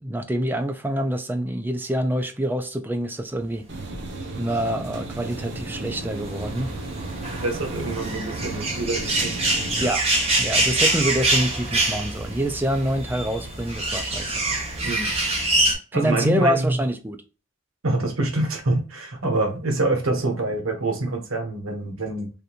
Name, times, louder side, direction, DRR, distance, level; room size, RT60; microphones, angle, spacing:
voice 1, 0.0-3.6 4.4-6.7 9.8-10.0 10.4-14.6 15.7-17.2, right 1 dB, 10° right, 0.3 m, -26 dB
sound 1, 3.7-9.9, right 2 dB, 55° right, 0.7 m, -35 dB
sound 2, 4.6-15.7, right 2 dB, 30° right, 0.9 m, -25 dB
voice 2, 7.4-9.4 14.8-15.1 15.9-16.8 17.8-22.3, right 2 dB, 85° right, 0.9 m, -25 dB
3.5 x 2.5 x 2.8 m
head